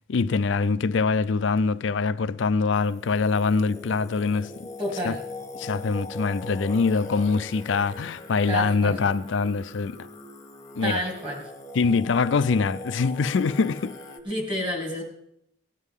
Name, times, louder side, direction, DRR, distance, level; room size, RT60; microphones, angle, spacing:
voice 1, 0.1-4.5 5.0-5.1 5.6-10.1 10.8-11.0 11.7-13.9, left 4 dB, 75° left, 0.4 m, -24 dB
Singing, 2.7-14.2, left 2 dB, 20° left, 0.9 m, -41 dB
voice 2, 4.8-5.2 8.5-9.0 10.8-11.4 14.2-15.0, equal, 25° right, 2.5 m, -29 dB
16.5 x 9.8 x 3.6 m
head